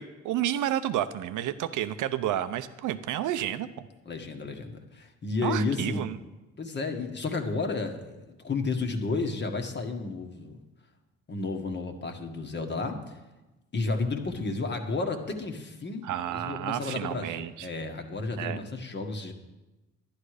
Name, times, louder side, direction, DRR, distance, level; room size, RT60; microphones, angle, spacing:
voice 1, 0.0-3.9 5.4-6.2 16.0-17.7 18.4-18.6, right 12 dB, 80° right, 12 dB, 0.7 m, -31 dB
voice 2, 4.0-6.2 6.6-10.6 11.3-13.2 13.7-19.3, left 3 dB, 35° left, 4 dB, 1.6 m, -32 dB
11.5 x 10.5 x 4.9 m, 1.1 s
cardioid pair, 90°, 30 cm